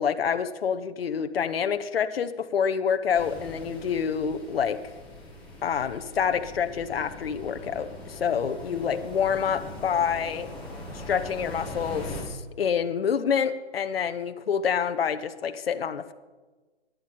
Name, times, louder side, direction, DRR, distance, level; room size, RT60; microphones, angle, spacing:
voice 1, 0.0-4.8 5.6-10.5 10.9-16.1, left 7 dB, 60° left, 9 dB, 1.1 m, -27 dB
sound 1, 3.1-12.2, left 1 dB, 5° left, 2.6 m, -41 dB
14.5 x 10.5 x 8.6 m, 1.3 s
hypercardioid pair, 160°, 33 cm